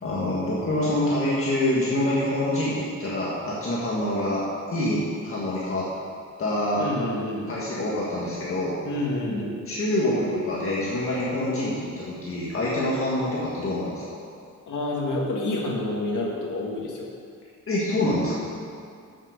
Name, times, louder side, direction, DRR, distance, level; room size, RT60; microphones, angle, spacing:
voice 1, 0.0-5.9 6.4-6.9 7.5-8.8 9.7-14.2 17.7-18.3, left 1 dB, 45° left, -7 dB, 1.7 m, -26 dB
voice 2, 6.8-7.5 8.8-9.6 14.7-17.1, left 2 dB, 75° left, -2 dB, 1.9 m, -28 dB
7.6 x 7.4 x 6.5 m, 2.2 s
wide cardioid pair, 160°, 31 cm